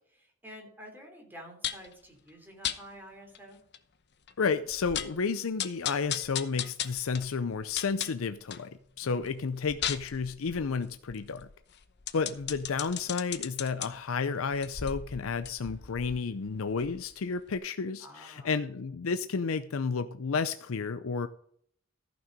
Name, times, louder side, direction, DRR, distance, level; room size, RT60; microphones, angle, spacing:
voice 1, 0.1-3.6 9.0-9.1 18.0-18.6, equal, 10° right, 1 dB, 3.2 m, -49 dB
sound 1, 1.6-1.9 2.6-2.8 3.3-3.4 3.7-3.8 4.3-4.4 4.7-5.2 5.6-8.7 9.1-13.9 14.5-17.2 17.5-17.6, left 10 dB, 55° left, 0.8 m, -37 dB
voice 2, 4.4-8.7 9.0-11.5 12.1-21.3, left 5 dB, 85° left, 12 dB, 0.6 m, -31 dB
14.5 x 6.2 x 5.2 m, 0.64 s
head